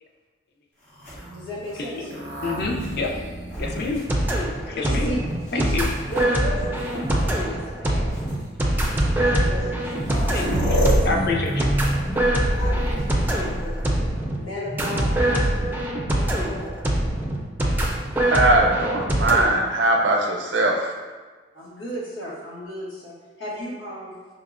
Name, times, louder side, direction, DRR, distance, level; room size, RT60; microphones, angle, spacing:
sound 1, 0.9-4.8 5.5-6.2 7.3-7.4 8.1-8.3 9.4-9.5 9.7-14.2 16.1-16.8, right 1 dB, 45° left, 1.0 m, -28 dB
voice 1, 1.3-2.1 4.7-5.2 5.5-5.7 6.1-8.2 9.2-10.1 10.6-11.0 12.6-14.0 14.4-15.6 16.1-16.7 21.5-24.2, equal, 85° left, -6 dB, 1.1 m, -35 dB
voice 2, 2.4-3.2 3.6-4.1 4.6-5.2 5.5-5.9 10.3-10.5 11.0-11.8 12.1-12.2 12.4-12.5, left 3 dB, 60° left, 2 dB, 0.5 m, -27 dB
sound 2, 3.5-19.5, right 1 dB, 10° right, 0.3 m, -24 dB
voice 3, 18.3-20.9, right 2 dB, 70° right, 0 dB, 0.6 m, -20 dB
5.4 x 2.1 x 2.4 m, 1.4 s
head